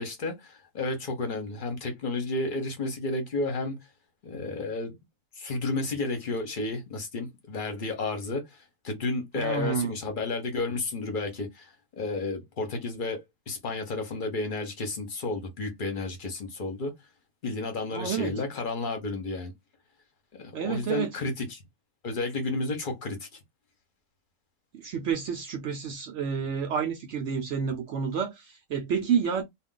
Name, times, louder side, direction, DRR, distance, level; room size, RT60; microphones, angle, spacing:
voice 1, 0.0-3.8 4.2-5.0 5.4-16.9 17.4-19.5 20.4-21.6 22.0-23.3, left 3 dB, 45° left, 0.8 m, -32 dB
voice 2, 9.4-10.0 17.9-18.3 20.5-21.1 24.7-29.4, right 7 dB, 70° right, 0.7 m, -29 dB
2.4 x 2.2 x 3.7 m
omnidirectional pair, 1.6 m